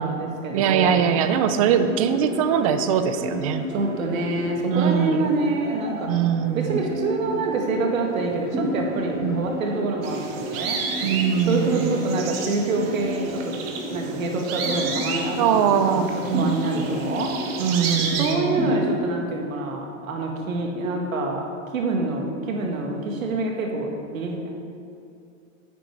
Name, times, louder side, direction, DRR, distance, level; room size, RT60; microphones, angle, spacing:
voice 1, 0.0-1.0 3.7-6.1 6.5-10.8 11.5-17.4 18.2-21.4 21.7-24.5, right 3 dB, 85° right, 1 dB, 2.1 m, -26 dB
voice 2, 0.5-3.7 4.7-5.3 6.1-6.8 9.2-9.5 11.0-12.0 15.4-16.9 17.6-18.8, right 8 dB, 30° right, 10 dB, 0.4 m, -22 dB
sound 1, 1.0-19.0, left 1 dB, 5° right, 1.3 m, -32 dB
sound 2, 10.0-18.3, right 5 dB, 45° right, 1.4 m, -32 dB
10.0 x 9.2 x 4.7 m, 2.5 s
hypercardioid pair, 155°, 40 cm